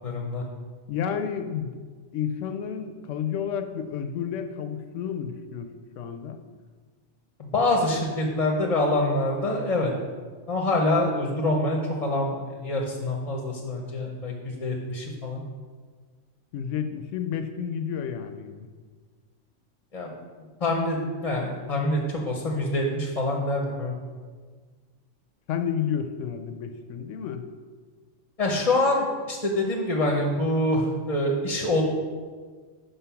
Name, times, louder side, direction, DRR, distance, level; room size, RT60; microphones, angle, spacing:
voice 1, 0.0-0.4 7.4-9.9 10.5-15.4 19.9-20.1 20.6-24.0 28.4-31.8, left 1 dB, 35° left, 0 dB, 0.7 m, -25 dB
voice 2, 0.9-1.8 2.1-6.4 16.5-18.7 25.5-27.5, left 8 dB, 75° left, 8 dB, 0.9 m, -31 dB
5.7 x 5.3 x 5.7 m, 1.5 s
omnidirectional pair, 1.3 m